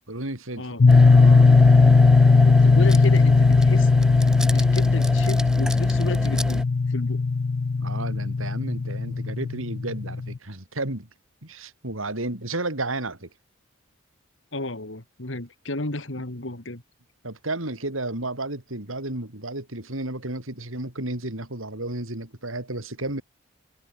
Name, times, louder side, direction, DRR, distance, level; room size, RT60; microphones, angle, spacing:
voice 1, 0.1-0.8 1.1-1.5 7.7-11.1 11.4-13.3 17.2-23.2, right 2 dB, 80° right, 4.4 m, -32 dB
sound 1, 0.8-10.4, left 4 dB, 50° left, 0.4 m, -18 dB
sound 2, 0.9-6.6, equal, 5° right, 1.0 m, -31 dB
voice 2, 2.4-3.9 4.5-7.2 14.5-16.8, left 1 dB, 65° left, 2.8 m, -33 dB
head